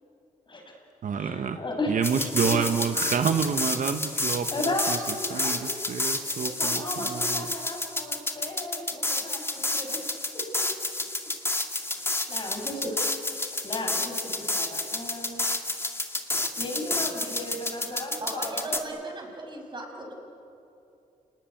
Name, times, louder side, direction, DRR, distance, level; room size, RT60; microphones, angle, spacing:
voice 1, 0.5-0.8 1.2-2.7 4.5-10.1 10.3-10.7 11.9-13.0 13.6-15.5 16.6-18.9, left 1 dB, 35° left, 2 dB, 6.0 m, -35 dB
voice 2, 1.0-1.6 1.9-5.0 5.3-7.5, right 6 dB, 60° right, 8 dB, 1.2 m, -28 dB
sound 1, 2.0-18.8, left 2 dB, 15° left, 2.1 m, -30 dB
voice 3, 18.2-20.1, right 2 dB, 30° right, 1 dB, 6.5 m, -37 dB
28.5 x 19.5 x 9.3 m, 2.7 s
cardioid pair, 90°, 15 cm